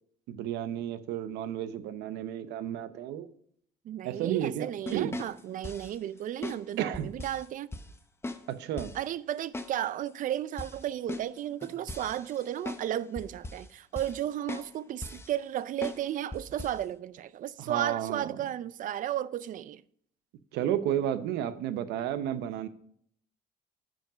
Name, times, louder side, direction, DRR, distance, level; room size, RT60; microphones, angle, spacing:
voice 1, 0.3-3.3 4.0-5.2 6.8-7.1 8.5-8.9 17.6-18.2 20.5-22.7, right 10 dB, 85° right, 0.7 m, -32 dB
voice 2, 3.8-7.7 8.9-19.8, right 11 dB, 50° right, 0.4 m, -34 dB
sound 1, 4.9-6.0 6.4-6.6 6.9-7.5 7.7-7.9 8.2-8.4 8.8-9.0 9.5-9.7 10.1-10.2 10.6-12.9 13.2-13.7 14.0-14.2 14.5-14.7 15.0-15.3 15.8-16.0 16.3-16.8, left 2 dB, 15° left, 0.7 m, -39 dB
9.1 x 5.1 x 5.0 m
cardioid pair, 110°, 17 cm